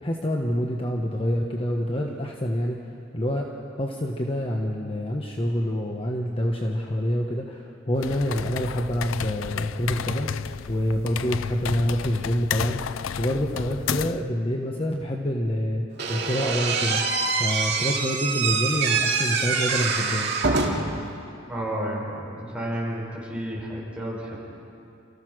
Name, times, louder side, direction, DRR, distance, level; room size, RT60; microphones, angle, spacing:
voice 1, 0.0-2.8 3.1-3.5 3.8-10.3 10.7-12.8 13.2-15.8 16.1-17.0 17.4-20.3, equal, 30° left, 0 dB, 1.3 m, -26 dB
sound 1, 7.9-14.3, left 7 dB, 85° left, 0.5 m, -31 dB
Slam / Squeak, 16.0-21.0, right 4 dB, 60° right, 2.4 m, -25 dB
voice 2, 21.5-24.4, right 1 dB, 5° right, -6 dB, 6.2 m, -31 dB
28.5 x 15.0 x 6.3 m, 2.6 s
head